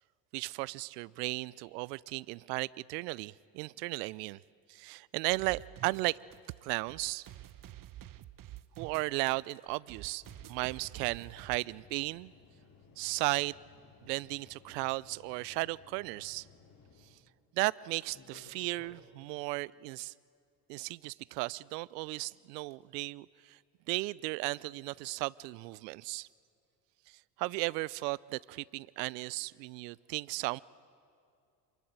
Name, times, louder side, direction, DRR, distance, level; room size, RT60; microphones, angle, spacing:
voice 1, 0.3-4.4 4.7-6.2 6.6-7.3 8.8-10.2 10.5-12.3 13.0-13.5 14.0-16.5 17.5-20.1 20.7-23.6 23.9-26.3 27.1-30.6, right 23 dB, 75° right, 0.6 m, -35 dB
sound 1, 5.3-11.6, right 13 dB, 40° right, 1.0 m, -49 dB
sound 2, 10.2-17.3 18.0-19.3 20.7-20.8 22.7-22.8 24.6-25.1 28.0-28.1, left 4 dB, 40° left, 5.4 m, -59 dB
26.5 x 21.5 x 9.0 m
hypercardioid pair, 65°, 49 cm